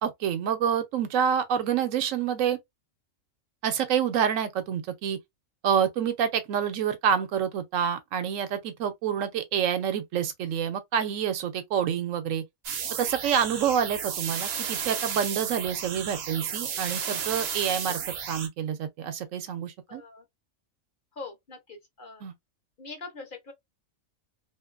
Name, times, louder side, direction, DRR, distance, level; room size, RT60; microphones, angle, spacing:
voice 1, 0.0-2.6 3.6-5.2 5.6-12.4 13.0-18.0 18.3-20.0 22.2-22.3, right 8 dB, 80° right, 1.0 m, -27 dB
sound 1, 12.6-18.5, right 7 dB, 60° right, 0.8 m, -33 dB
voice 2, 19.9-20.2 21.1-22.3 22.8-23.5, left 3 dB, 50° left, 0.8 m, -43 dB
2.8 x 2.5 x 2.3 m
omnidirectional pair, 1.3 m